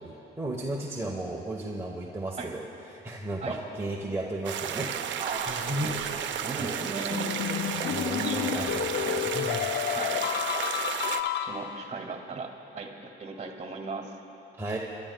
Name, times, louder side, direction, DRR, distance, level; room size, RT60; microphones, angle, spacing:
voice 1, 0.0-2.6 2.9-5.2 5.5-6.0 6.6-6.7 7.9-8.9 9.3-9.8 14.6-14.8, right 1 dB, 15° right, -3 dB, 1.0 m, -34 dB
sound 1, 4.4-11.2, right 9 dB, 70° right, 0.6 m, -33 dB
voice 2, 5.2-7.4 8.2-9.3 9.9-10.2 11.4-14.1, right 4 dB, 35° right, 2 dB, 2.0 m, -37 dB
sound 2, 7.1-12.0, left 10 dB, 60° left, 0.4 m, -31 dB
28.0 x 12.0 x 2.3 m, 2.9 s
cardioid pair, 90°, 20 cm